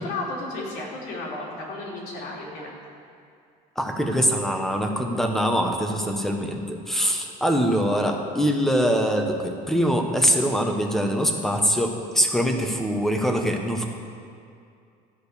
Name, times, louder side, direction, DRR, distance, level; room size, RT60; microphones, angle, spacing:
voice 1, 0.0-2.7, left 2 dB, 75° left, -4 dB, 3.2 m, -33 dB
voice 2, 3.8-13.8, equal, ahead, 3 dB, 0.9 m, -23 dB
12.5 x 5.1 x 8.3 m, 2.4 s
cardioid pair, 155°, 17 cm